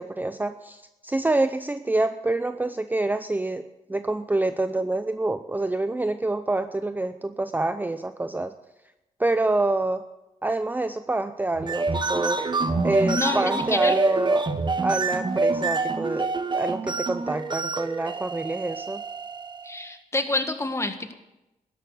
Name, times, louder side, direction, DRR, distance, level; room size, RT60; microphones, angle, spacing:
voice 1, 0.0-8.5 9.2-10.0 10.4-12.4 12.8-14.5 14.8-19.0, right 2 dB, 15° right, 10 dB, 0.6 m, -27 dB
sound 1, 11.5-19.8, right 3 dB, 35° right, 1.2 m, -26 dB
voice 2, 13.0-13.9 19.6-21.1, left 2 dB, 20° left, 7 dB, 1.8 m, -28 dB
13.0 x 11.0 x 7.9 m, 0.96 s
cardioid pair, 70°, 14 cm